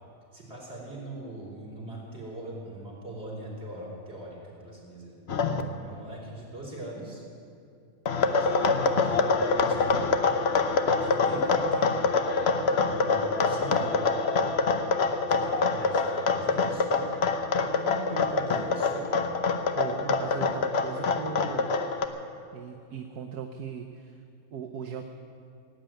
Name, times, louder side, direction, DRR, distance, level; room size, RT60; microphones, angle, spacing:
voice 1, 0.3-5.1 5.8-7.2 8.3-10.0 11.0-12.2 12.8-14.0 15.3-17.1 17.6-19.1, right 1 dB, 40° right, -5 dB, 4.4 m, -40 dB
sound 1, 5.3-5.6 8.1-22.1, left 4 dB, 50° left, 0.9 m, -25 dB
voice 2, 12.7-13.0 19.7-21.8 22.5-24.2 24.5-25.0, right 7 dB, 75° right, 5 dB, 1.3 m, -38 dB
17.5 x 9.2 x 9.0 m, 2.5 s
omnidirectional pair, 1.7 m